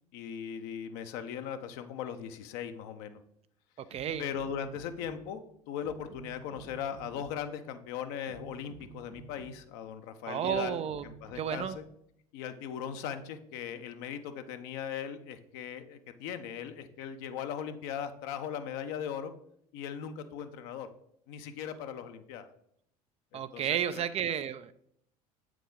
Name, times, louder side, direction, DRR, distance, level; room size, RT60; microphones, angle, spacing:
voice 1, 0.1-3.2 4.2-5.4 5.7-11.8 12.3-19.3 19.7-20.9 21.3-22.5 23.3-24.0, left 8 dB, 55° left, 8 dB, 0.8 m, -39 dB
voice 2, 3.9-4.3 10.3-11.0 11.4-11.8 23.3-24.7, right 9 dB, 30° right, 13 dB, 0.4 m, -32 dB
sound 1, 3.9-5.4 5.8-7.6 8.1-9.8 10.4-12.0, right 6 dB, 50° right, 1.2 m, -52 dB
8.0 x 4.8 x 3.9 m, 0.70 s
figure-of-eight pair, 70°, 20 cm